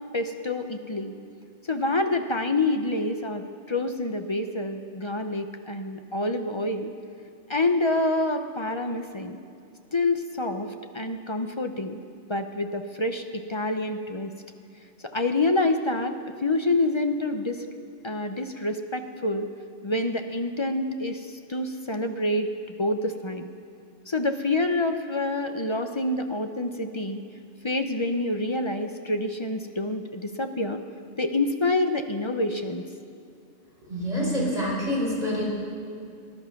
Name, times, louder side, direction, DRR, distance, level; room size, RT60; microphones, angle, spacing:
voice 1, 0.1-1.1 1.7-6.9 7.5-9.4 9.9-10.7 10.9-12.0 12.3-14.3 15.0-17.6 18.0-19.5 19.8-22.5 22.8-23.5 24.1-27.2 27.6-30.8 31.2-32.9, left 2 dB, 30° left, 6 dB, 0.6 m, -27 dB
voice 2, 33.9-35.4, equal, 35° right, -5 dB, 4.8 m, -26 dB
19.5 x 11.5 x 5.9 m, 2.5 s
omnidirectional pair, 1.2 m